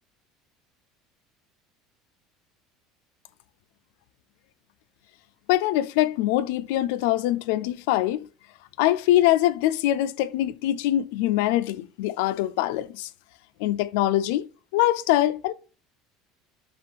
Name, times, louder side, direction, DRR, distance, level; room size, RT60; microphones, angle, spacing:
voice 1, 5.5-8.3 8.8-13.1 13.6-14.5 14.7-15.5, left 14 dB, 80° left, 0.3 m, -23 dB
5.2 x 2.4 x 3.2 m
cardioid pair, 175°, 0 cm